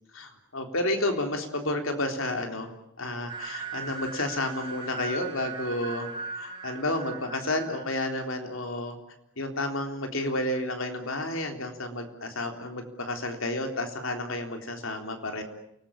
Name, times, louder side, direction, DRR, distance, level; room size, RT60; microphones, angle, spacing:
voice 1, 0.1-2.7 3.0-9.0 9.4-15.4, left 1 dB, 75° left, 5 dB, 3.7 m, -31 dB
sound 1, 3.3-8.4, right 5 dB, 25° right, 5.7 m, -39 dB
28.5 x 20.0 x 8.7 m, 0.81 s
head